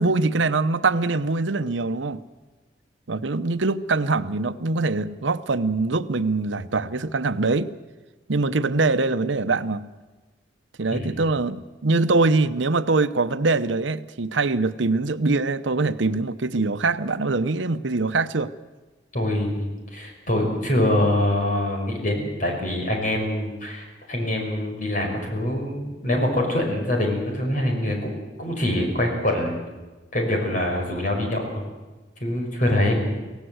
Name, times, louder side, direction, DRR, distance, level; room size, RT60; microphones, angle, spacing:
voice 1, 0.0-2.2 3.1-7.7 8.3-9.9 10.8-18.5, right 3 dB, 85° right, 12 dB, 0.9 m, -23 dB
voice 2, 19.1-28.1 28.4-29.6 30.1-31.6 32.2-33.1, left 1 dB, 45° left, 2 dB, 5.8 m, -24 dB
25.0 x 17.5 x 7.9 m, 1.2 s
head